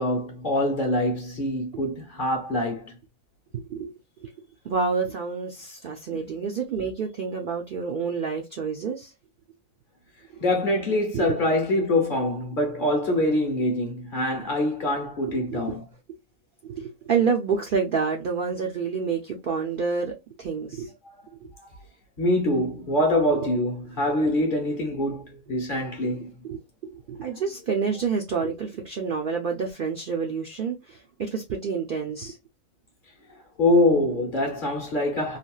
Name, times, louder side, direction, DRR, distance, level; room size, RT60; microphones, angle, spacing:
voice 1, 0.0-2.9 6.1-6.2 10.4-15.8 22.2-26.3 33.6-35.4, left 1 dB, 45° left, 0.8 m, -24 dB
voice 2, 3.5-4.3 4.6-9.1 11.1-11.3 15.3-15.7 16.6-20.9 21.4-21.5 23.4-23.5 26.4-26.6 26.8-32.4, right 5 dB, 60° right, 0.5 m, -28 dB
3.3 x 2.3 x 2.3 m
omnidirectional pair, 1.4 m